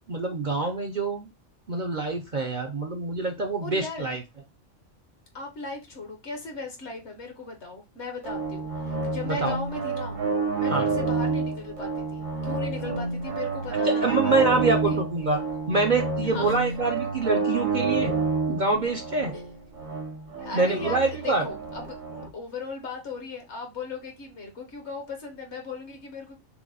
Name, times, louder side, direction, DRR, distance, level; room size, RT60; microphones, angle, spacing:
voice 1, 0.1-1.3 1.7-4.2 9.3-9.5 10.7-10.8 13.8-15.4 15.7-18.1 18.5-19.3 20.5-21.4, right 3 dB, 45° right, 0.6 m, -25 dB
voice 2, 3.6-4.1 5.3-10.2 10.6-15.0 16.2-16.6 19.3-19.5 20.4-26.4, left 3 dB, 60° left, 1.4 m, -37 dB
sound 1, 8.2-22.3, right 4 dB, 80° right, 1.6 m, -29 dB
5.8 x 2.1 x 3.9 m
omnidirectional pair, 1.3 m